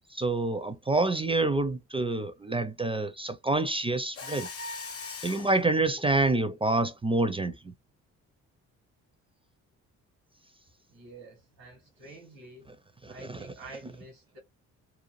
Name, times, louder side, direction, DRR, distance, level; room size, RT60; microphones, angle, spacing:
voice 1, 0.1-4.5 5.2-7.7 13.2-13.4, right 2 dB, 15° right, 0.5 m, -27 dB
Mechanisms, 4.1-5.6, left 4 dB, 35° left, 0.7 m, -39 dB
voice 2, 10.9-12.7 13.0-14.4, right 2 dB, 85° right, 1.3 m, -48 dB
2.7 x 2.3 x 3.0 m
hypercardioid pair, 50°, 39 cm